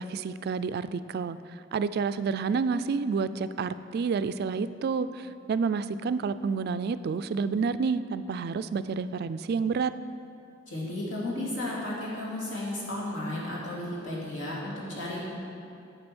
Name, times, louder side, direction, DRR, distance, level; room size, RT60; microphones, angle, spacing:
voice 1, 0.0-1.4 1.7-9.9, right 5 dB, 55° right, 13 dB, 0.3 m, -29 dB
voice 2, 10.7-15.2, left 1 dB, 85° left, -6 dB, 2.8 m, -33 dB
8.7 x 8.4 x 6.1 m, 2.6 s
head